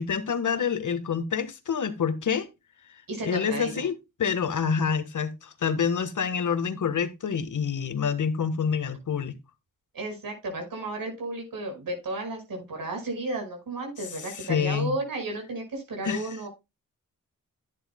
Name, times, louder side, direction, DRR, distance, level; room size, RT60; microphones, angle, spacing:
voice 1, 0.0-2.5 3.2-3.9 4.2-9.4 14.3-14.9 16.0-16.3, left 6 dB, 55° left, 1.5 m, -27 dB
voice 2, 3.1-3.9 9.9-16.5, right 2 dB, 70° right, 5.3 m, -33 dB
11.0 x 9.9 x 2.2 m
cardioid pair, 50°, 36 cm